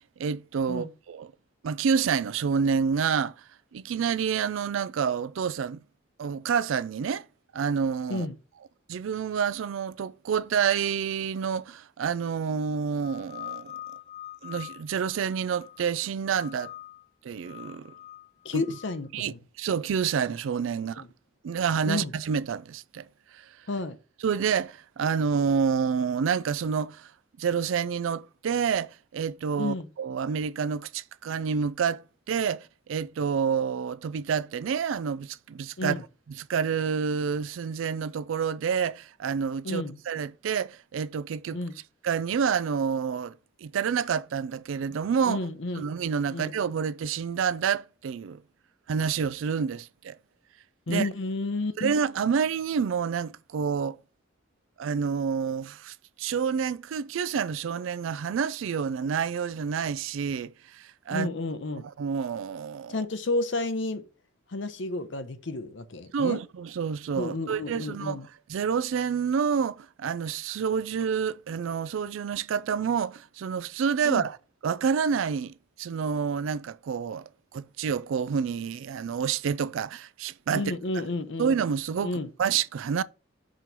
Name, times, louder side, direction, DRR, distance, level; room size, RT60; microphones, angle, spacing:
voice 1, 0.2-1.3 1.6-3.4 3.7-5.8 6.2-7.2 7.5-8.3 8.9-13.7 14.4-16.7 17.2-17.9 18.5-18.8 19.1-21.1 21.4-23.1 23.3-23.5 24.2-27.1 27.4-41.6 42.0-43.3 43.6-45.5 45.8-48.4 48.9-50.2 50.9-51.1 51.8-54.0 54.8-61.3 62.0-63.1 66.1-68.2 68.5-74.4 74.6-80.8 81.4-83.0, right 6 dB, 75° right, 0.3 m, -28 dB
sound 1, 13.0-15.9 16.3-17.1 17.4-19.0, left 13 dB, 35° left, 0.5 m, -44 dB
voice 2, 18.4-19.4 21.0-21.1 21.9-22.1 23.7-24.0 29.5-29.9 35.8-36.0 39.6-40.0 41.5-41.8 45.2-45.9 46.3-46.5 50.9-52.0 61.1-61.9 62.9-64.1 64.5-66.4 67.1-68.3 74.0-74.3 80.5-81.6 82.0-82.3, left 2 dB, 65° left, 0.7 m, -31 dB
6.2 x 3.0 x 5.2 m
head